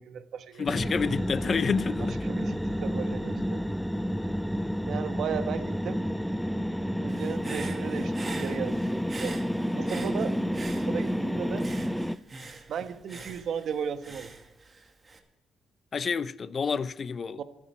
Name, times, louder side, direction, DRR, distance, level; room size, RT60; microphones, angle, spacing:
voice 1, 0.0-0.7 2.2-3.7 4.9-6.0 7.0-9.5 9.7-10.4 10.7-11.7 12.7-14.3 17.4-17.5, right 7 dB, 65° right, 1.3 m, -35 dB
voice 2, 0.6-2.2 15.9-17.4, left 5 dB, 45° left, 0.7 m, -29 dB
sound 1, 0.7-12.2, equal, ahead, 0.5 m, -30 dB
Human voice / Breathing, 7.1-11.3 11.6-15.2, right 3 dB, 30° right, 2.2 m, -44 dB
27.5 x 9.8 x 4.5 m
cardioid pair, 90°, 0 cm